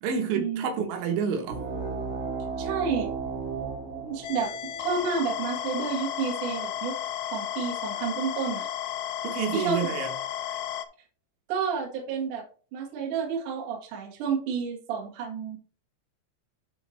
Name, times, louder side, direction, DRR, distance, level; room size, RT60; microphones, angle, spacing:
voice 1, 0.0-1.7 9.2-10.2 10.5-10.6, right 6 dB, 80° right, 3.5 m, -29 dB
sound 1, 1.4-6.5, right 5 dB, 30° right, 3.4 m, -35 dB
voice 2, 2.6-3.1 4.0-7.0 7.3-8.7 9.5-9.8 11.5-12.4 12.7-15.6, right 6 dB, 55° right, 2.6 m, -30 dB
sound 2, 4.2-10.9, left 10 dB, 90° left, 2.5 m, -33 dB
11.0 x 5.0 x 3.2 m
omnidirectional pair, 5.5 m